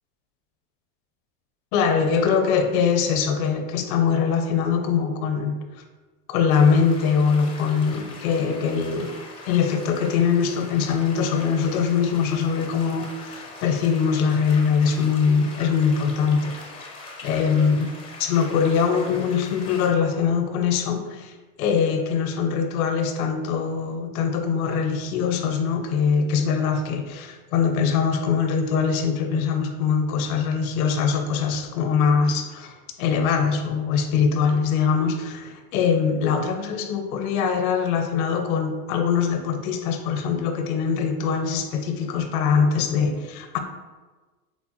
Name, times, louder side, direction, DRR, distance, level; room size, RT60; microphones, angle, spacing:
voice 1, 1.7-5.6 6.3-9.1 9.5-16.6 17.2-17.9 18.2-21.3 21.6-43.6, left 6 dB, 70° left, 6 dB, 0.6 m, -22 dB
sound 1, 6.5-19.9, left 3 dB, 15° left, 0.4 m, -42 dB
4.2 x 2.0 x 3.0 m, 1.3 s
supercardioid pair, 125°, 44 cm